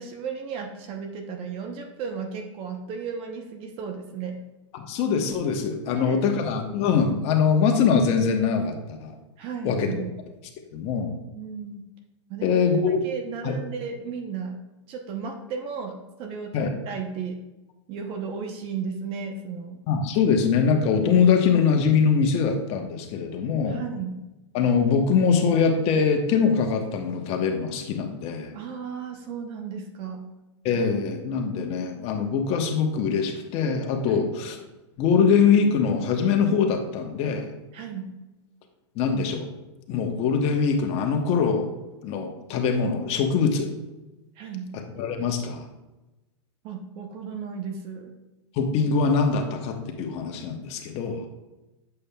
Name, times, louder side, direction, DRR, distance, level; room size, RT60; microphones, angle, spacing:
voice 1, 0.0-4.4 5.8-6.2 9.4-10.1 11.3-11.8 12.3-12.6 13.0-14.6 14.9-17.4 17.9-19.8 23.7-24.2 28.5-30.2 34.1-34.3 37.7-38.1 44.4-44.7 46.6-48.1, right 6 dB, 40° right, 4 dB, 0.9 m, -34 dB
voice 2, 4.7-9.1 9.6-10.0 10.7-11.1 12.4-13.0 13.4-13.6 16.5-16.7 19.9-23.8 24.5-28.5 30.6-34.6 35.0-37.5 38.9-39.5 39.9-41.7 42.0-43.7 45.0-45.7 48.5-51.2, left 6 dB, 40° left, 4 dB, 1.1 m, -23 dB
8.3 x 6.8 x 2.3 m, 1.1 s
hypercardioid pair, 120°, 16 cm